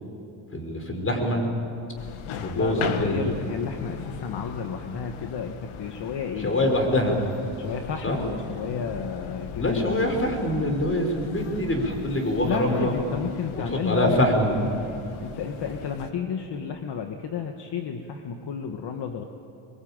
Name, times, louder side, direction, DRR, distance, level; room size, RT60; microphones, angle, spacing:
voice 1, 0.5-1.5 2.4-3.2 6.4-7.2 8.0-8.2 9.6-12.9 13.7-14.6, left 1 dB, 25° left, 3 dB, 5.6 m, -24 dB
sound 1, 2.0-16.1, left 7 dB, 75° left, 1.9 m, -38 dB
voice 2, 2.5-6.7 7.6-10.2 12.4-14.5 15.2-19.2, left 6 dB, 55° left, 5 dB, 1.7 m, -31 dB
24.0 x 23.5 x 9.0 m, 2.8 s
cardioid pair, 100°, 50 cm